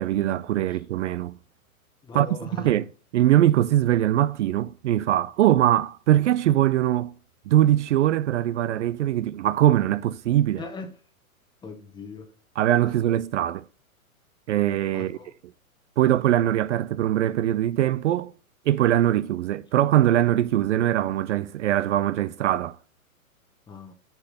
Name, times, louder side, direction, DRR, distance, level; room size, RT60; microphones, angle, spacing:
voice 1, 0.0-1.4 2.1-7.1 7.5-10.6 12.6-13.7 14.5-15.2 16.0-18.3 18.7-22.8, right 12 dB, 55° right, 0.5 m, -22 dB
voice 2, 2.0-2.7 10.6-10.9 11.6-12.3 14.9-15.3 23.7-23.9, left 4 dB, 10° left, 1.0 m, -39 dB
6.8 x 5.8 x 5.7 m
hypercardioid pair, 140°, 42 cm